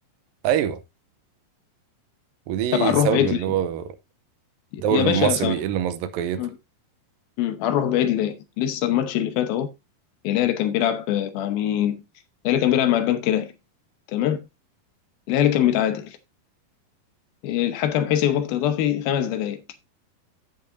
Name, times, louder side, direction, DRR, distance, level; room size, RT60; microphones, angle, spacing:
voice 1, 0.4-0.8 2.5-4.0 4.8-6.4, right 10 dB, 80° right, 2.3 m, -24 dB
voice 2, 2.7-3.4 4.7-5.6 6.4-6.6 7.4-9.7 10.2-12.0 12.4-13.5 14.1-14.4 15.3-16.2 17.4-19.6, left 11 dB, 80° left, 2.8 m, -22 dB
15.0 x 5.6 x 2.6 m
omnidirectional pair, 4.2 m